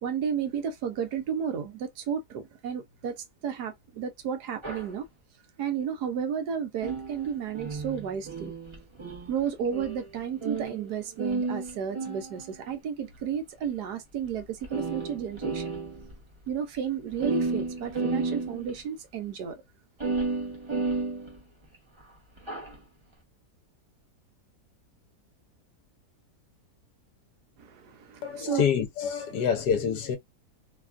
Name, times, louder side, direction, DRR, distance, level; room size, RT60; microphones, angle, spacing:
voice 1, 0.0-5.1 5.6-8.5 9.3-15.7 16.5-19.6 27.6-28.6, right 7 dB, 75° right, 1.3 m, -32 dB
sound 1, 4.6-4.9 6.8-10.9 11.2-12.7 13.6-13.7 14.3-14.4 14.6-16.1 16.5-16.6 16.8-16.9 17.1-18.8 20.0-21.8 22.4-22.8, right 4 dB, 25° right, 0.8 m, -32 dB
voice 2, 28.2-30.2, left 7 dB, 75° left, 1.3 m, -27 dB
3.3 x 2.3 x 2.4 m
omnidirectional pair, 1.8 m